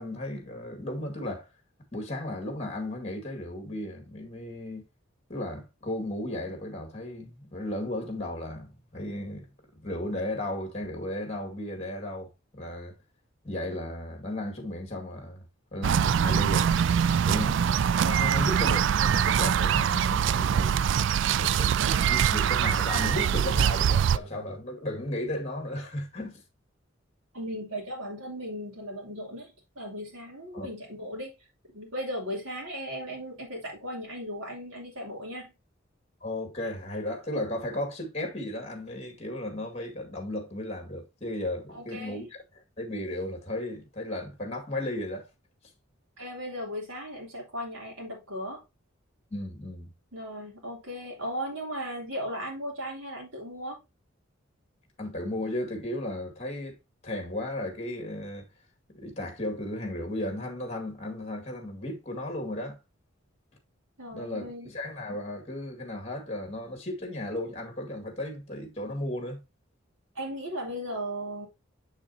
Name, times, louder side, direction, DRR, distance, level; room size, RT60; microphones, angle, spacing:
voice 1, 0.0-1.5 1.9-4.8 5.3-9.5 9.8-12.9 13.4-15.5 15.7-16.7 17.2-17.7 18.0-20.8 21.4-26.4 30.5-30.7 36.2-42.3 42.8-45.3 49.3-49.9 55.0-56.7 57.0-58.5 58.9-62.8 64.1-69.4, left 1 dB, 30° left, 2.1 m, -35 dB
sound 1, 15.8-24.2, right 8 dB, 65° right, 0.3 m, -23 dB
voice 2, 27.3-31.3 31.7-35.5 41.7-42.2 46.2-48.6 50.1-53.8 64.0-64.7 70.1-71.5, equal, 90° right, 3.0 m, -37 dB
7.2 x 6.4 x 2.8 m
head